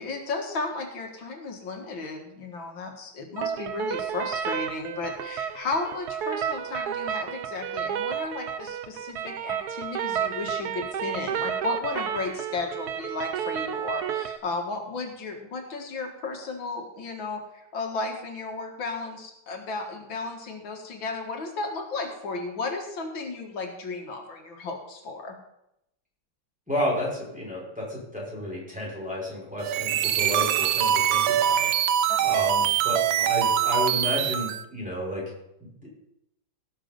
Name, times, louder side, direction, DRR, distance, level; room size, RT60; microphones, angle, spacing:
voice 1, 0.0-25.4 32.1-32.2, left 3 dB, 80° left, 3 dB, 2.3 m, -34 dB
sound 1, 3.4-14.4, right 9 dB, 65° right, 1.1 m, -31 dB
voice 2, 26.7-31.7 32.2-35.3 35.6-35.9, left 1 dB, 5° right, -5 dB, 5.3 m, -31 dB
sound 2, 29.6-34.6, right 10 dB, 85° right, 1.4 m, -23 dB
17.5 x 6.5 x 5.2 m, 0.84 s
omnidirectional pair, 2.1 m